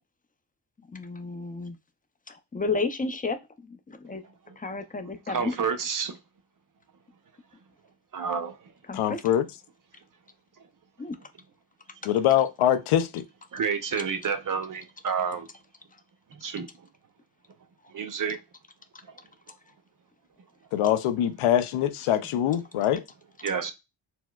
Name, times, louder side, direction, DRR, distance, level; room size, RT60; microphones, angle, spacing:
voice 1, 0.9-1.8 2.3-3.4 3.7-4.2 4.6-5.6 8.9-9.2 11.0-11.2, left 3 dB, 20° left, 0.4 m, -32 dB
voice 2, 5.0-6.2 8.1-8.6 13.5-15.5 16.3-16.7 17.9-18.4 19.1-19.2 23.4-23.7, right 6 dB, 40° right, 0.7 m, -30 dB
voice 3, 8.9-9.5 12.1-13.2 20.7-23.0, left 11 dB, 85° left, 0.5 m, -23 dB
4.2 x 2.0 x 2.2 m
cardioid pair, 70°, 49 cm